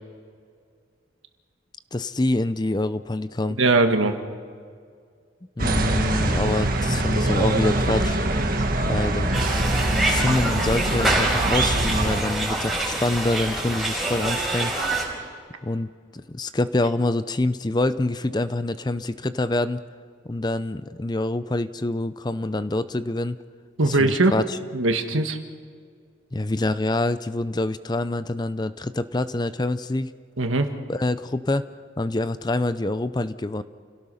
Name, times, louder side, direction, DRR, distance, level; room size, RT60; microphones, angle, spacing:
voice 1, 1.9-3.6 5.6-8.2 8.8-9.4 10.0-14.7 15.6-15.9 16.3-19.8 20.2-23.4 23.8-24.6 26.3-30.1 30.9-31.6 32.0-33.6, left 2 dB, 20° left, 13 dB, 0.5 m, -26 dB
voice 2, 3.6-4.2 23.8-24.3 24.7-25.4 30.4-30.7, right 2 dB, 80° right, 6 dB, 1.7 m, -20 dB
sound 1, 5.6-12.2, right 1 dB, 45° right, 1.6 m, -23 dB
sound 2, 9.3-15.0, right 2 dB, ahead, 4.6 m, -26 dB
29.5 x 17.5 x 5.6 m, 2.1 s
head